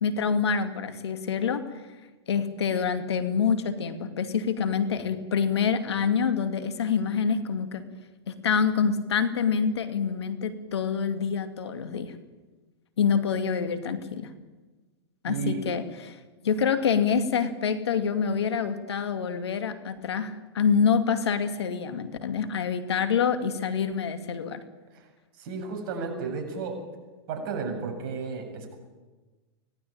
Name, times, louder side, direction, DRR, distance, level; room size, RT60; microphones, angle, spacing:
voice 1, 0.0-1.8 2.3-7.8 8.3-12.1 13.0-14.3 15.2-16.2 16.4-24.6, left 6 dB, 80° left, 9 dB, 2.5 m, -26 dB
voice 2, 15.3-15.7 24.9-25.0 25.4-26.8 27.3-28.8, right 4 dB, 55° right, 4 dB, 7.2 m, -33 dB
24.5 x 19.0 x 8.9 m, 1.2 s
hypercardioid pair, 115°, 14 cm